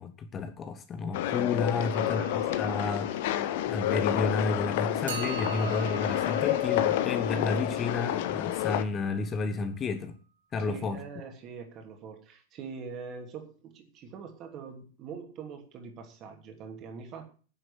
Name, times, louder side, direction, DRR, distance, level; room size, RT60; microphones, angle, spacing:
voice 1, 0.0-3.1 3.6-10.2 10.5-11.0, left 4 dB, 25° left, 1.2 m, -31 dB
sound 1, 1.1-8.8, left 12 dB, 50° left, 1.1 m, -29 dB
voice 2, 1.7-2.2 10.6-17.2, right 5 dB, 35° right, 3.1 m, -43 dB
sound 2, 1.9-4.4 5.1-9.0, right 6 dB, 65° right, 3.8 m, -44 dB
10.0 x 7.8 x 8.4 m
figure-of-eight pair, 90°, 0 cm